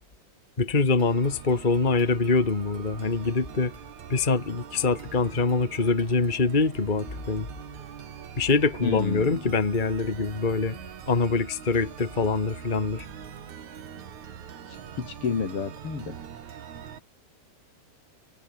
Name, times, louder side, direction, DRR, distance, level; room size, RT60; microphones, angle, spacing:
voice 1, 0.6-3.7 4.1-7.5 8.4-10.8 11.1-13.0, left 4 dB, 70° left, 0.4 m, -24 dB
sound 1, 1.0-17.0, right 8 dB, 50° right, 3.0 m, -43 dB
voice 2, 8.8-9.4 15.0-16.2, left 6 dB, 35° left, 2.9 m, -29 dB
omnidirectional pair, 4.9 m